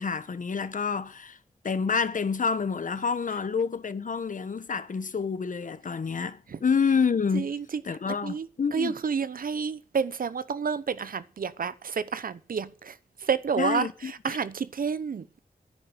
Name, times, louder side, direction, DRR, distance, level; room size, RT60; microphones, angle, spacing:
voice 1, 0.0-1.4 1.6-7.5 7.8-9.0 13.6-14.4, left 5 dB, 60° left, 1.2 m, -28 dB
voice 2, 7.3-7.6 8.2-13.0 13.2-15.4, right 6 dB, 80° right, 0.9 m, -30 dB
10.5 x 9.4 x 9.3 m
wide cardioid pair, 115°, 15 cm